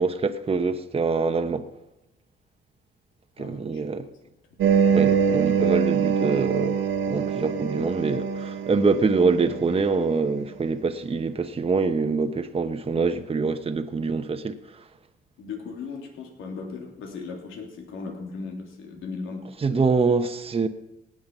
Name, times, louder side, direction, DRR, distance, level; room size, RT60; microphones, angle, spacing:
voice 1, 0.0-1.7 3.4-4.1 4.9-6.8 7.1-14.5 19.6-20.7, right 4 dB, 30° right, 1.0 m, -24 dB
voice 2, 3.4-3.8 15.4-19.4 19.7-19.8, left 4 dB, 85° left, 3.3 m, -37 dB
sound 1, 4.6-10.1, right 7 dB, 80° right, 1.8 m, -24 dB
18.0 x 7.9 x 5.5 m
cardioid pair, 90°, 20 cm